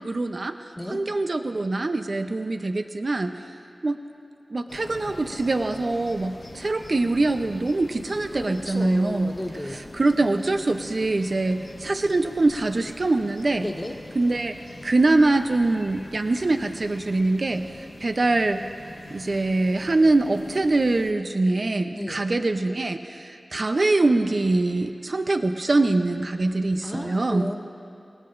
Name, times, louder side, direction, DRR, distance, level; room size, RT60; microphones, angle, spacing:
voice 1, 0.0-0.6 0.9-3.3 3.8-4.0 4.5-9.3 10.0-13.7 14.2-14.5 14.8-17.7 18.0-18.6 19.1-27.5, right 2 dB, 60° right, 7 dB, 0.7 m, -23 dB
sound 1, 4.7-21.1, left 1 dB, 80° left, 2.4 m, -44 dB
voice 2, 8.3-9.8 13.6-14.0 21.9-22.2 26.8-27.5, left 1 dB, 20° left, 0 dB, 1.8 m, -32 dB
28.0 x 18.5 x 2.6 m, 2.7 s
cardioid pair, 45°, 0 cm